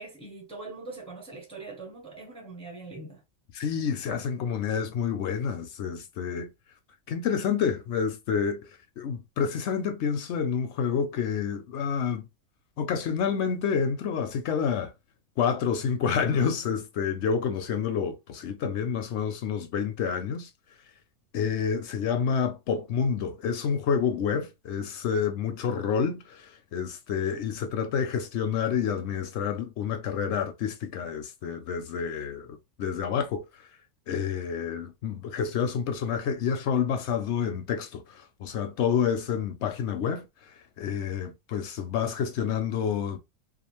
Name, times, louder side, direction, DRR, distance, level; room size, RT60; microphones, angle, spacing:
voice 1, 0.0-3.2, right 3 dB, 5° left, 0.5 m, -42 dB
voice 2, 3.5-6.5 7.1-8.7 9.0-12.3 12.8-14.9 15.4-20.5 21.3-33.4 34.1-40.3 40.8-43.2, left 7 dB, 65° left, 0.7 m, -28 dB
2.5 x 2.4 x 2.9 m
omnidirectional pair, 1.5 m